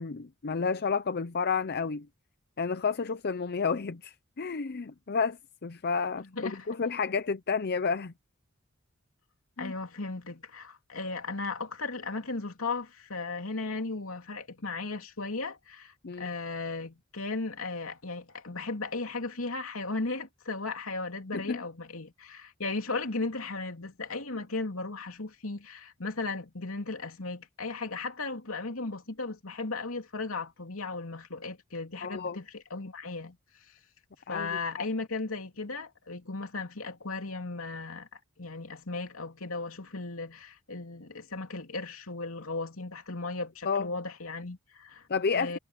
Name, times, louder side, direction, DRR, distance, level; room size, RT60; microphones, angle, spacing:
voice 1, 0.0-2.1 2.6-8.1 9.6-9.7 16.0-16.3 21.3-21.6 32.0-32.4 34.3-34.9 43.7-43.9 45.1-45.6, left 5 dB, 50° left, 0.6 m, -31 dB
voice 2, 6.2-6.7 7.1-7.2 9.6-33.7 34.3-45.1 45.3-45.6, left 3 dB, 80° left, 3.0 m, -36 dB
head